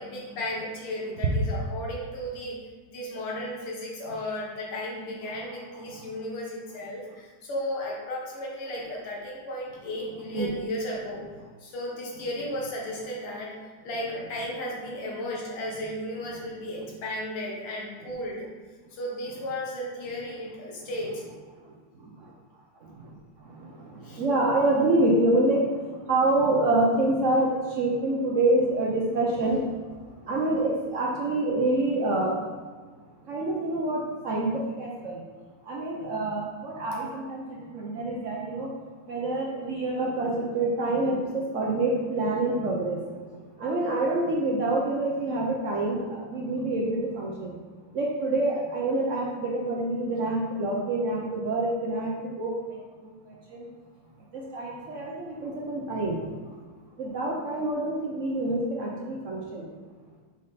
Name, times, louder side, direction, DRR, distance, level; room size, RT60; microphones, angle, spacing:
voice 1, 0.0-2.6 2.9-11.2 11.6-18.5 18.9-21.2 24.0-24.2, left 1 dB, 90° left, -3 dB, 2.3 m, -34 dB
voice 2, 23.9-25.6 26.1-29.6 30.3-32.4 33.3-35.2 35.7-38.7 39.1-43.0 43.6-47.5 47.9-52.5 53.5-53.7 54.3-56.2 57.0-59.6, right 2 dB, 90° right, -2 dB, 0.6 m, -26 dB
5.4 x 5.0 x 4.0 m, 1.4 s
omnidirectional pair, 2.4 m